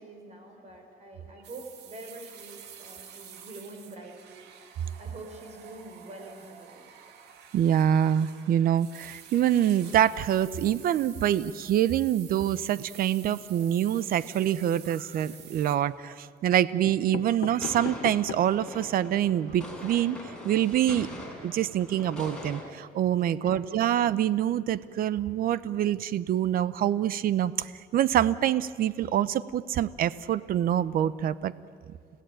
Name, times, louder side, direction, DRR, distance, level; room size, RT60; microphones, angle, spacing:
voice 1, 0.0-7.0 17.2-17.3 23.2-23.8, right 2 dB, 40° right, 4 dB, 6.2 m, -46 dB
sound 1, 1.4-15.8, right 8 dB, 80° right, 2.4 m, -49 dB
voice 2, 7.5-20.2 20.4-21.1 21.4-31.5, right 11 dB, 60° right, 17 dB, 0.8 m, -25 dB
sound 2, 15.1-15.7 16.5-16.6 16.9-18.7 19.2-19.3 19.4-19.5 19.8-20.0, left 12 dB, 75° left, 1.0 m, -39 dB
sound 3, 17.6-22.6, left 1 dB, 5° left, 7.1 m, -42 dB
30.0 x 17.5 x 9.1 m, 2.1 s
cardioid pair, 110°, 17 cm